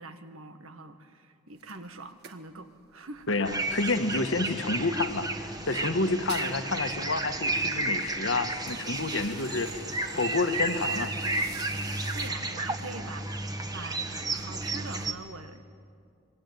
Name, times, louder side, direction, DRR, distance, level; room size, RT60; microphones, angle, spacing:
voice 1, 0.0-3.3 12.1-15.6, right 3 dB, 90° right, 8 dB, 1.8 m, -44 dB
sound 1, 1.6-4.1 4.4-6.6 7.0-7.1 7.3-7.7 8.2-12.3, right 6 dB, 50° right, 1.6 m, -49 dB
voice 2, 3.3-11.1, left 3 dB, 65° left, 8 dB, 1.4 m, -29 dB
sound 2, 3.4-15.1, right 2 dB, 20° right, 1.3 m, -32 dB
26.0 x 22.5 x 9.3 m, 2.3 s
head